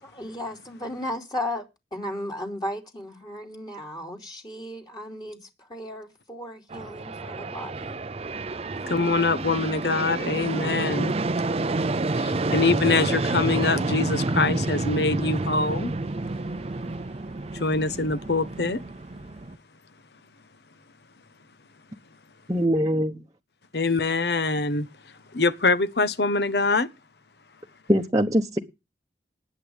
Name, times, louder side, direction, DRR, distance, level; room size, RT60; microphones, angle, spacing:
voice 1, 0.0-1.6 1.9-8.0, left 1 dB, 25° left, 2.9 m, -35 dB
sound 1, 6.7-19.6, right 2 dB, 35° right, 0.6 m, -29 dB
voice 2, 8.9-11.1 12.2-15.9 17.5-18.8 23.7-24.9 25.3-26.9, left 3 dB, 65° left, 1.1 m, -24 dB
voice 3, 22.5-23.2 27.9-28.6, equal, 20° right, 1.0 m, -22 dB
19.5 x 8.4 x 3.5 m
head